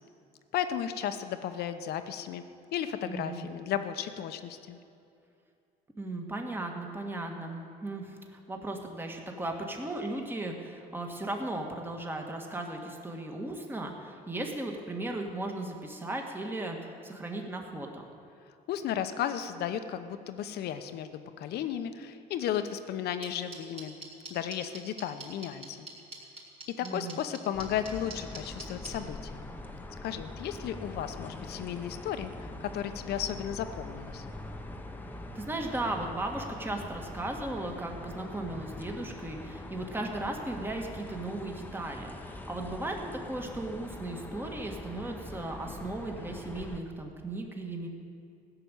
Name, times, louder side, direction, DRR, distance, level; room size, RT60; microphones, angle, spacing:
voice 1, 0.5-2.4 2.7-4.8 18.7-24.0 24.3-25.9 26.7-29.4 30.0-34.3, left 10 dB, 70° left, 9 dB, 0.9 m, -34 dB
voice 2, 3.1-3.5 6.0-18.0 26.8-27.2 35.4-47.9, right 2 dB, 10° right, 2 dB, 1.7 m, -36 dB
sound 1, 23.2-28.9, right 2 dB, 35° right, 3.5 m, -42 dB
sound 2, 27.5-46.8, left 1 dB, 10° left, 1.0 m, -43 dB
16.0 x 6.9 x 9.2 m, 2.6 s
cardioid pair, 110°, 17 cm